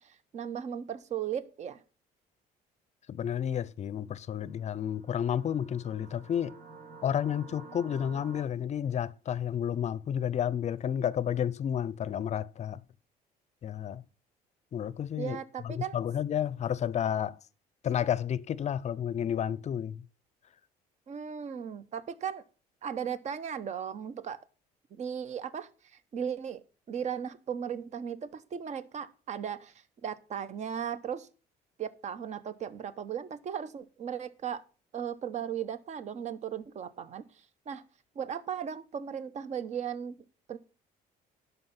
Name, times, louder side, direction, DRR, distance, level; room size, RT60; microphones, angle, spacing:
voice 1, 0.0-1.8 15.1-16.0 21.1-22.4 22.8-24.4 24.9-25.7 26.1-29.7 30.0-31.3 31.8-34.6 34.9-37.2 37.7-37.8 38.2-40.1 40.5-40.6, right 8 dB, 45° right, 0.9 m, -36 dB
voice 2, 3.1-6.5 7.0-12.8 13.6-14.0 14.7-15.4 15.6-17.4 17.8-20.0, left 9 dB, 40° left, 0.6 m, -31 dB
sound 1, 4.4-8.4, right 4 dB, 60° right, 3.0 m, -50 dB
11.0 x 5.6 x 5.9 m
cardioid pair, 110°, 17 cm